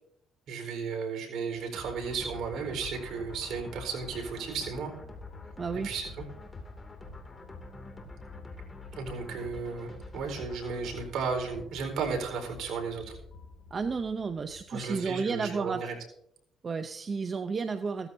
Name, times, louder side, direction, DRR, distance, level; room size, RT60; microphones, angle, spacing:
voice 1, 0.5-4.9 5.7-6.2 9.0-13.2 14.7-15.9, right 5 dB, 70° right, 1 dB, 4.4 m, -34 dB
sound 1, 1.5-15.6, left 4 dB, 60° left, 2.2 m, -49 dB
sound 2, 1.7-11.1, left 2 dB, 20° left, 2.5 m, -48 dB
voice 2, 5.6-5.9 13.7-15.8 16.6-18.1, right 5 dB, 35° right, 8 dB, 0.7 m, -32 dB
16.0 x 14.0 x 2.7 m, 0.73 s
cardioid pair, 95°, 0 cm